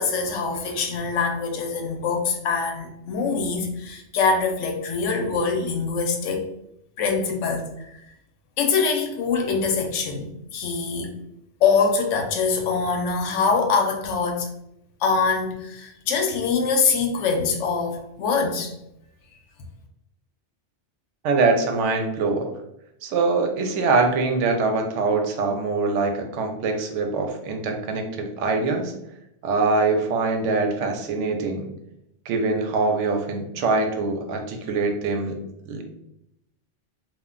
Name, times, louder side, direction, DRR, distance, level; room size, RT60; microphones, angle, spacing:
voice 1, 0.0-6.5 7.0-7.9 8.6-11.1 11.6-14.5 15.0-18.7, left 5 dB, 85° left, 4 dB, 0.9 m, -24 dB
voice 2, 21.2-22.5 23.0-28.9 29.4-31.7 32.3-35.3 35.7-35.8, right 3 dB, 85° right, 4 dB, 0.9 m, -23 dB
2.3 x 2.1 x 3.6 m, 0.81 s
omnidirectional pair, 1.2 m